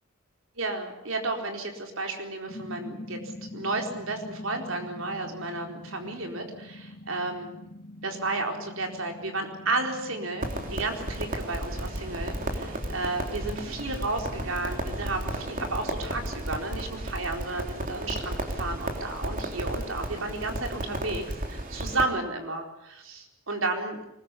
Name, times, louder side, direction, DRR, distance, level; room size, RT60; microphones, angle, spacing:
voice 1, 0.6-7.5 8.0-24.0, right 2 dB, 75° right, 3 dB, 4.3 m, -32 dB
sound 1, 2.5-19.0, left 1 dB, 45° left, 3.2 m, -45 dB
Crackle, 10.4-22.1, right 1 dB, 40° right, 3.5 m, -34 dB
23.5 x 21.0 x 8.4 m, 0.86 s
head